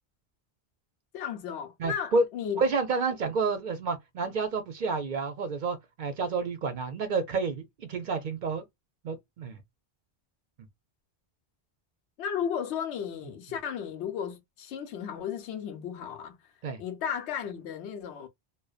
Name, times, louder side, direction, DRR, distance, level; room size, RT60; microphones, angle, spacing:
voice 1, 1.1-2.6 12.2-16.4 16.8-18.3, left 8 dB, 90° left, 0.9 m, -34 dB
voice 2, 1.8-2.2 2.6-8.6 9.0-9.6 16.6-16.8, right 4 dB, 60° right, 0.6 m, -29 dB
2.5 x 2.1 x 2.3 m
omnidirectional pair, 1.1 m